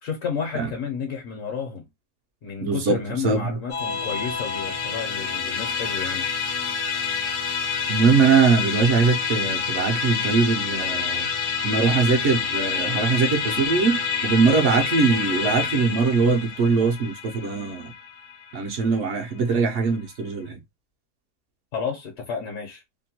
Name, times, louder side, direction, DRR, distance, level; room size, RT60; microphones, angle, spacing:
voice 1, 0.0-1.9 2.4-6.3 21.7-22.8, left 6 dB, 70° left, 1.1 m, -31 dB
voice 2, 2.6-3.5 7.9-11.2 11.6-17.9 18.5-20.6, right 5 dB, 65° right, 0.9 m, -21 dB
Musical instrument, 3.7-19.2, left 6 dB, 55° left, 0.7 m, -28 dB
2.8 x 2.2 x 2.7 m
omnidirectional pair, 1.5 m